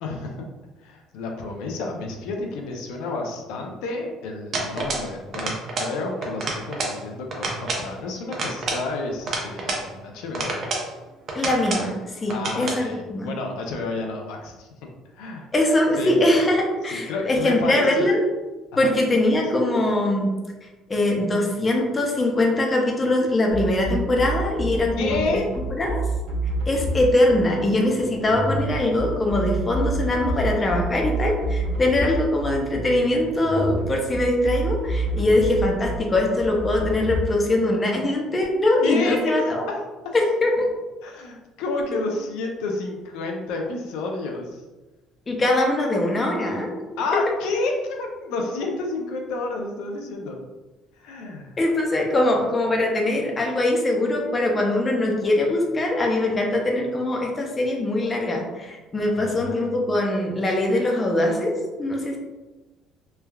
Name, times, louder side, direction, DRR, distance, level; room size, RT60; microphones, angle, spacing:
voice 1, 0.0-0.5 0.8-10.7 12.3-14.7 15.1-15.5 16.0-16.2 16.9-18.1 18.7-18.9 25.0-25.5 38.8-40.2 41.0-44.6 47.0-50.4 51.0-51.6 59.2-59.7, left 3 dB, 85° left, 1 dB, 0.4 m, -30 dB
sound 1, 4.5-5.1 5.3-5.9 6.2-7.0 7.3-7.9 8.3-9.9 10.3-10.9 11.3-11.9 12.3-12.8, right 3 dB, 45° right, 0.6 m, -28 dB
voice 2, 11.3-12.0 12.2-13.3 15.5-18.2 18.8-20.3 20.9-25.2 25.8-26.0 26.7-39.6 40.1-40.7 45.3-46.7 47.1-47.2 51.6-62.2, left 1 dB, 25° left, 0 dB, 0.5 m, -22 dB
sound 2, 23.5-37.2, right 2 dB, 90° right, 0.6 m, -28 dB
3.2 x 2.2 x 2.2 m, 1.1 s
cardioid pair, 125°, 0 cm